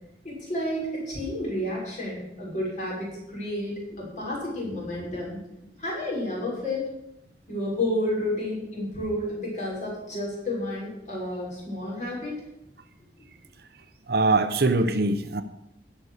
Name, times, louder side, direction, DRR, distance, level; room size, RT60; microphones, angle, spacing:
voice 1, 0.2-5.4 5.8-6.9 7.5-12.4, left 1 dB, 45° left, -4 dB, 6.1 m, -31 dB
voice 2, 14.1-15.4, right 3 dB, 60° right, 10 dB, 0.8 m, -22 dB
16.5 x 5.9 x 6.5 m, 0.84 s
head